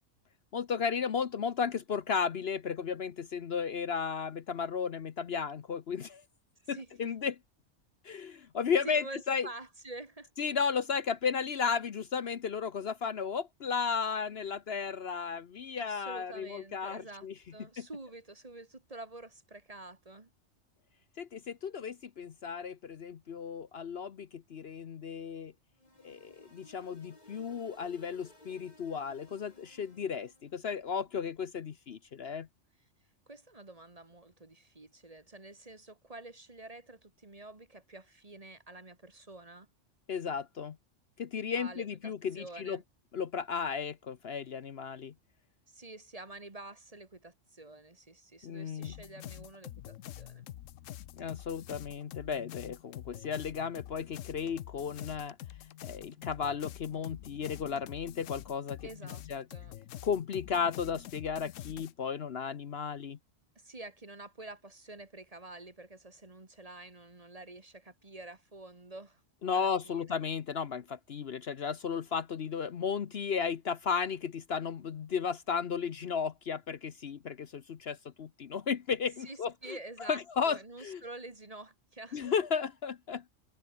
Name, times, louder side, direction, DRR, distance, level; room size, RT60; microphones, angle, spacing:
voice 1, 0.5-6.2 6.7-7.3 8.0-9.5 10.4-17.3 17.8-17.9 21.2-25.5 26.0-32.5 40.1-40.8 41.2-42.8 43.1-45.1 48.4-48.9 51.2-55.4 55.8-58.8 59.3-59.4 60.0-63.2 69.4-79.8 80.1-81.0 82.1-83.3, left 6 dB, 55° left, 1.0 m, -34 dB
voice 2, 6.7-7.1 8.8-10.3 15.8-17.3 17.5-20.3 33.3-39.7 41.5-42.8 45.7-50.5 58.8-59.2 59.5-59.7 63.6-69.2 69.5-70.2 79.2-82.3, right 2 dB, 30° right, 1.8 m, -48 dB
sound 1, 25.8-30.5, left 1 dB, 35° left, 4.9 m, -59 dB
sound 2, 48.8-61.9, left 12 dB, 80° left, 1.0 m, -46 dB
omnidirectional pair, 1.3 m